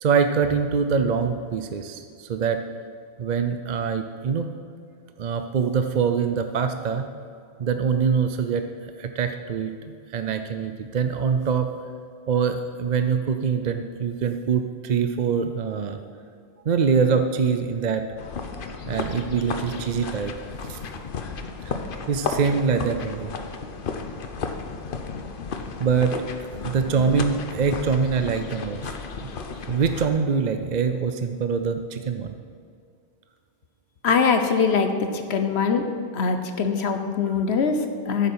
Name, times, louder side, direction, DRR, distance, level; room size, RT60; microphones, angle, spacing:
voice 1, 0.0-2.6 3.2-4.5 5.2-7.0 7.6-11.7 12.3-16.0 16.7-18.0 18.9-20.3 20.7-20.8 21.7-21.8 22.1-23.3 25.8-26.1 26.6-28.8 29.2-29.3 29.7-32.3, right 6 dB, 50° right, 7 dB, 0.6 m, -24 dB
sound 1, 18.2-30.1, left 4 dB, 55° left, 1.0 m, -33 dB
voice 2, 34.0-35.9 36.1-38.3, left 5 dB, 80° left, 6 dB, 1.2 m, -22 dB
13.5 x 7.4 x 5.6 m, 2.4 s
omnidirectional pair, 1.1 m